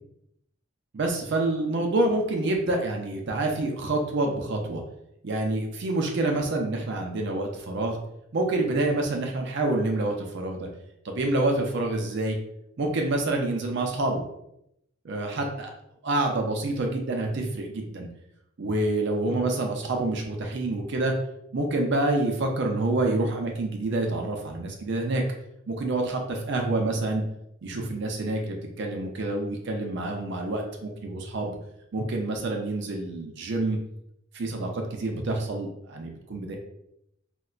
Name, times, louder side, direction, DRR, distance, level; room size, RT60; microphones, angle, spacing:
voice 1, 0.9-4.8 5.2-8.0 8.3-10.7 11.0-12.4 12.8-14.2 15.1-15.7 16.0-18.1 18.6-21.1 21.5-25.2 25.7-27.2 27.6-31.5 31.9-33.8 34.3-36.6, right 2 dB, 60° right, 2 dB, 0.5 m, -27 dB
4.0 x 2.1 x 2.4 m, 0.79 s
head